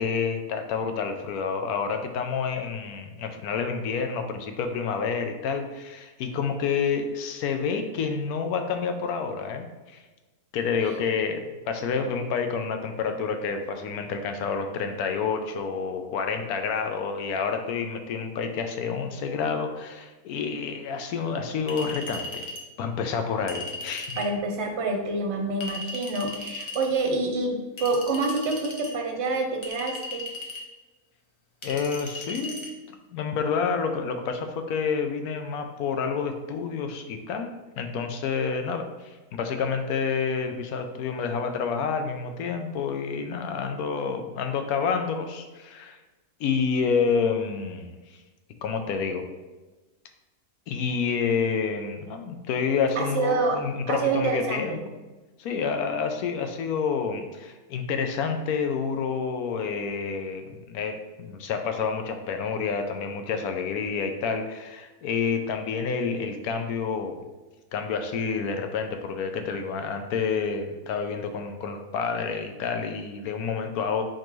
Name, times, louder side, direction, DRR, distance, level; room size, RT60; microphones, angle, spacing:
voice 1, 0.0-10.0 10.5-22.5 22.8-24.2 31.6-32.8 33.1-46.0 46.4-48.2 48.6-49.2 50.7-54.8 55.4-67.2 67.7-74.0, left 5 dB, 75° left, 6 dB, 1.0 m, -29 dB
Chink clink, 21.7-22.7 23.5-24.3 25.6-26.9 27.8-28.9 29.6-30.7 31.6-32.7, left 2 dB, 45° left, 0.3 m, -37 dB
voice 2, 24.2-30.2 53.0-53.6 53.9-54.8, right 3 dB, 55° right, 3 dB, 0.9 m, -27 dB
4.5 x 3.7 x 3.1 m, 1.2 s
omnidirectional pair, 1.6 m